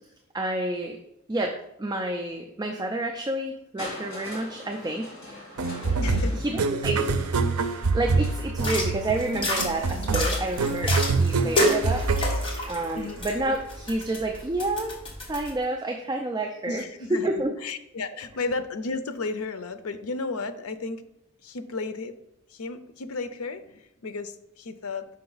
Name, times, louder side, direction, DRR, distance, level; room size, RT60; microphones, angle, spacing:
voice 1, 0.3-1.0 1.3-1.5 1.8-5.1 6.4-7.1 7.6-12.0 12.7-14.9 15.3-16.8 17.2-17.5, right 2 dB, 20° right, 3 dB, 0.4 m, -29 dB
Crushing, 3.8-9.7 10.6-10.7, left 1 dB, 55° left, 2.4 m, -43 dB
sound 1, 5.6-13.2, right 3 dB, 85° right, 0.5 m, -26 dB
voice 2, 6.0-6.4 13.0-13.2 16.7-17.3 17.6-21.0 21.4-22.1 22.5-25.1, left 3 dB, 80° left, 10 dB, 0.5 m, -33 dB
sound 2, 8.5-15.5, left 1 dB, 25° left, 1.2 m, -30 dB
5.7 x 5.2 x 3.9 m, 0.82 s
head